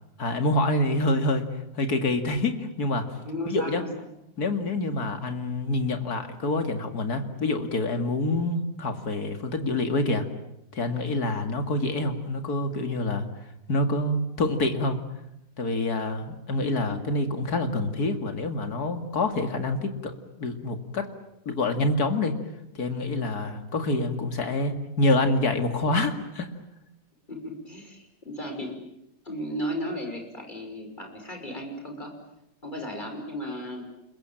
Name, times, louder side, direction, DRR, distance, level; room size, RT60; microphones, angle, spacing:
voice 1, 0.2-1.5 1.7-3.0 3.5-3.8 4.4-10.3 10.7-13.3 13.7-15.0 15.6-21.1 21.5-22.3 22.7-26.5, left 2 dB, 65° left, 7 dB, 2.8 m, -26 dB
voice 2, 3.2-4.1 16.6-17.0 27.3-28.7 29.2-32.1 32.6-33.9, equal, 25° left, 3 dB, 6.0 m, -35 dB
29.5 x 22.0 x 9.0 m, 0.83 s
omnidirectional pair, 1.8 m